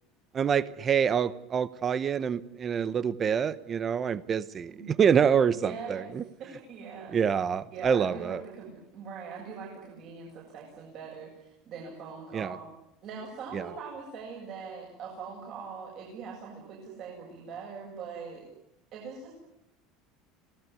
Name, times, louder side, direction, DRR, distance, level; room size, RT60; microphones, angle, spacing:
voice 1, 0.3-6.2 7.1-8.4 12.3-12.5 13.5-13.6, right 7 dB, 20° right, 17 dB, 0.9 m, -26 dB
voice 2, 4.7-5.0 5.5-6.1 6.4-7.2 7.7-12.7 13.0-18.4 18.9-19.3, right 5 dB, 40° right, -2 dB, 7.7 m, -42 dB
26.5 x 18.5 x 9.7 m, 0.80 s
cardioid pair, 170°, 0 cm